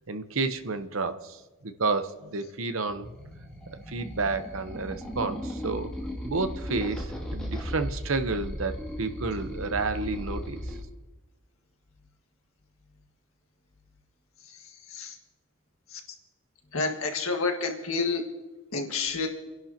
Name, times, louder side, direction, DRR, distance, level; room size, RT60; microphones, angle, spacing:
voice 1, 0.1-1.4 1.6-3.1 3.7-5.9 6.2-10.6, right 3 dB, 75° right, 9 dB, 0.9 m, -30 dB
sound 1, 2.9-10.8, equal, 5° left, 2.5 m, -36 dB
voice 2, 16.7-18.2 18.7-19.3, left 4 dB, 85° left, 3 dB, 1.8 m, -29 dB
29.5 x 11.0 x 2.9 m, 1.1 s
head